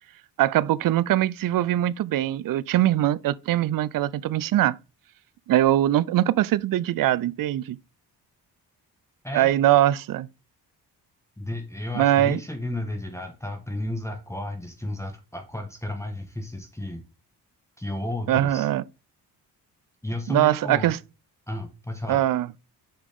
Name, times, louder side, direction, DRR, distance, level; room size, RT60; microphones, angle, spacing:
voice 1, 0.4-4.8 5.5-7.8 9.3-10.3 11.9-12.4 18.3-18.8 20.3-21.0 22.1-22.5, right 13 dB, 55° right, 0.5 m, -22 dB
voice 2, 11.4-17.0 17.8-18.7 20.0-20.9 21.5-22.2, left 1 dB, 5° left, 1.4 m, -33 dB
7.2 x 5.1 x 3.6 m
cardioid pair, 70°, 41 cm